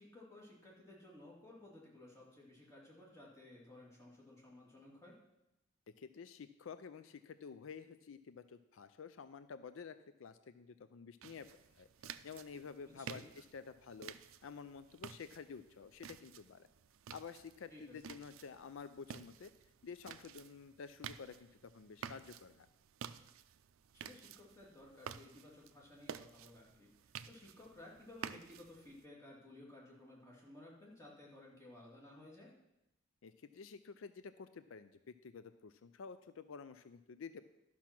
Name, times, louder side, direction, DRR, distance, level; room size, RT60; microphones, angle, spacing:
voice 1, 0.0-5.2 13.0-13.3 17.7-18.0 23.9-32.5, left 1 dB, 15° left, -4 dB, 2.5 m, -56 dB
voice 2, 6.0-11.5 11.8-11.9 12.2-14.1 14.4-16.7 17.1-19.5 19.8-22.7 33.2-37.4, left 5 dB, 80° left, 12 dB, 0.4 m, -51 dB
sound 1, 11.2-29.0, right 7 dB, 85° right, 0.4 m, -52 dB
12.0 x 5.9 x 5.9 m, 0.89 s
head